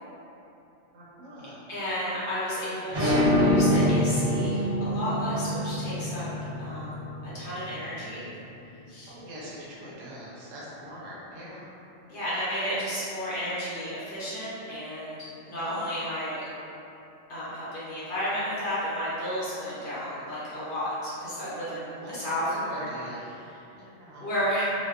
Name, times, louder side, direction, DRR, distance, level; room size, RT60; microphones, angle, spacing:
voice 1, 0.9-1.6 9.1-11.7 15.5-15.8 21.9-22.2 22.5-23.2 23.7-24.3, equal, 85° right, -7 dB, 1.0 m, -43 dB
voice 2, 1.7-6.2 6.6-7.0 7.3-8.2 8.9-9.1 12.1-15.2 15.4-16.4 17.3-23.6 24.2-24.7, equal, 55° left, -10 dB, 0.7 m, -32 dB
sound 1, 2.9-8.2, equal, 55° right, 1.0 m, -25 dB
2.7 x 2.1 x 2.2 m, 2.9 s
omnidirectional pair, 1.3 m